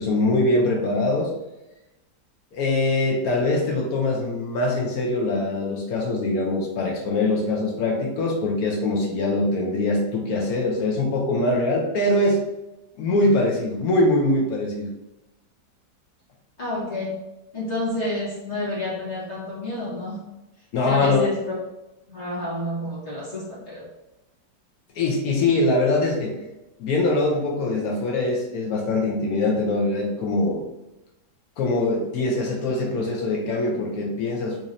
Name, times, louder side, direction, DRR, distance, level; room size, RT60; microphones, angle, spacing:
voice 1, 0.0-1.3 2.5-12.4 13.0-14.9 20.7-21.3 24.9-26.4 26.8-30.6 31.6-34.6, left 2 dB, 65° left, -1 dB, 1.0 m, -23 dB
voice 2, 16.6-17.1 17.5-20.2 20.8-21.6 22.1-23.8, left 1 dB, 45° left, -7 dB, 1.5 m, -29 dB
4.0 x 3.0 x 2.5 m, 0.98 s
omnidirectional pair, 1.8 m